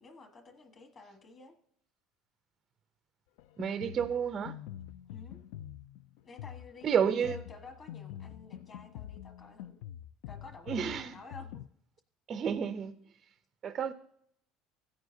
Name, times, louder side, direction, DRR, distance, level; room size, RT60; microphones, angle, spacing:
voice 1, 0.0-1.5 5.1-5.4 6.2-9.8 10.3-11.6, left 3 dB, 25° left, 1.2 m, -52 dB
Drum kit, 3.4-11.7, left 11 dB, 90° left, 0.3 m, -46 dB
voice 2, 3.6-4.6 6.8-7.4 10.7-11.1 12.3-12.9 13.6-13.9, right 7 dB, 25° right, 0.4 m, -30 dB
16.5 x 9.4 x 2.6 m
cardioid pair, 180°, 0 cm